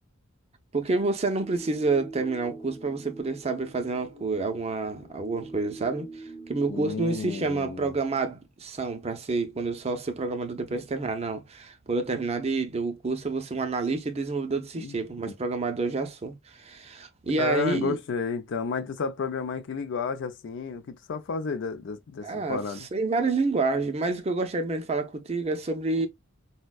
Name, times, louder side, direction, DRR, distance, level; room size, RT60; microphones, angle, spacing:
voice 1, 0.7-6.1 6.5-18.0 22.2-22.6 22.9-26.1, right 3 dB, 30° right, 0.5 m, -28 dB
sound 1, 1.4-7.5, right 3 dB, 20° left, 0.7 m, -44 dB
voice 2, 6.7-7.9 10.7-10.8 14.8-15.0 15.2-15.3 17.4-22.9, left 5 dB, 60° left, 0.4 m, -32 dB
4.3 x 2.1 x 2.2 m
head